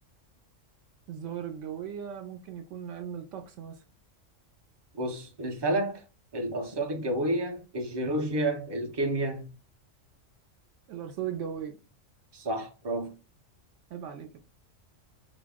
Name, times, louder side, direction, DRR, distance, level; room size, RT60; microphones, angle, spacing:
voice 1, 1.1-3.8 10.9-11.8 13.9-14.4, right 9 dB, 75° right, 0.9 m, -37 dB
voice 2, 5.0-6.0 6.3-9.5 12.3-13.1, right 1 dB, 30° right, 0.5 m, -30 dB
3.9 x 2.0 x 3.5 m
omnidirectional pair, 1.3 m